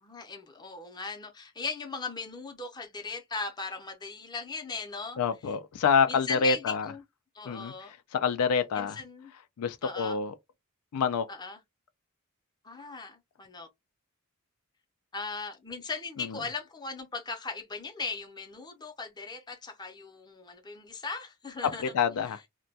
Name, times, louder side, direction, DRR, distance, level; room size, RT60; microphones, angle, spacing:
voice 1, 0.0-5.2 6.0-7.0 7.3-7.9 8.7-9.3 9.8-10.2 11.3-11.6 12.6-13.7 15.1-21.9, left 4 dB, 20° left, 0.5 m, -38 dB
voice 2, 5.2-6.9 7.5-9.0 9.6-10.3 10.9-11.3 16.2-16.4 21.8-22.4, left 6 dB, 80° left, 0.4 m, -27 dB
2.2 x 2.2 x 2.6 m
head